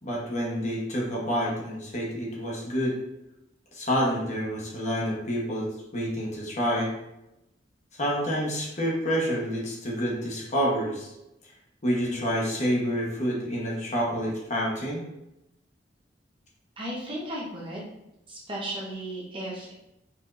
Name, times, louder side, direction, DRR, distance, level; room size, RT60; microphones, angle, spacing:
voice 1, 0.0-3.0 3.7-5.7 5.9-6.9 8.0-11.1 11.8-15.1, equal, 40° left, -4 dB, 1.1 m, -28 dB
voice 2, 16.8-17.8 18.3-19.7, right 1 dB, 30° right, -4 dB, 0.9 m, -35 dB
4.3 x 3.5 x 2.6 m, 0.88 s
head